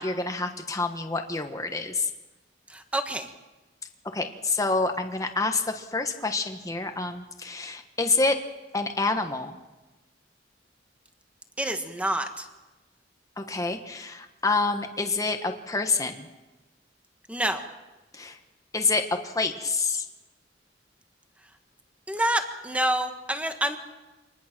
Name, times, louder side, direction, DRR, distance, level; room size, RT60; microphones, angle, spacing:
voice 1, 0.0-2.1 4.1-8.4 8.7-9.6 13.4-16.3 18.1-18.4 18.7-20.0, left 3 dB, 20° left, 5 dB, 1.3 m, -27 dB
voice 2, 2.7-3.3 11.6-12.5 17.3-17.6 22.1-23.8, right 1 dB, 5° right, 6 dB, 1.6 m, -27 dB
26.0 x 20.0 x 6.1 m, 1.1 s
head